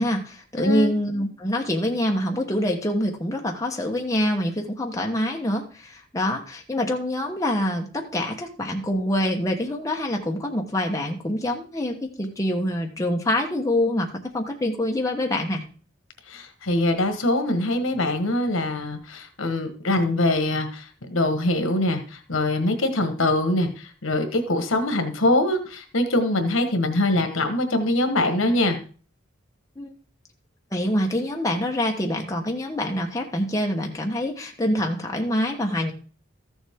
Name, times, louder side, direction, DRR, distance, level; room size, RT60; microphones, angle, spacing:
voice 1, 0.0-15.6 29.8-29.9 30.7-35.9, left 1 dB, 15° left, 1 dB, 1.1 m, -25 dB
voice 2, 0.6-0.9 16.3-28.8, left 1 dB, 80° left, 7 dB, 1.4 m, -23 dB
13.5 x 7.1 x 3.6 m, 0.39 s
head